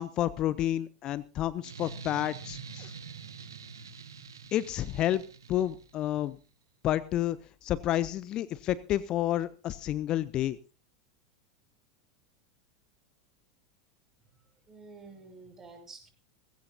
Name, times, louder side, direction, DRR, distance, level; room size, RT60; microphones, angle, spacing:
voice 1, 0.0-2.9 4.5-5.2 5.5-6.4 6.8-7.4 7.6-10.6, left 13 dB, 40° left, 19 dB, 0.6 m, -30 dB
sound 1, 1.6-6.1, right 5 dB, 75° right, 1.5 m, -45 dB
voice 2, 14.2-16.1, right 4 dB, 20° right, 4 dB, 5.8 m, -51 dB
20.0 x 16.5 x 2.7 m, 0.34 s
figure-of-eight pair, 85°, 2 cm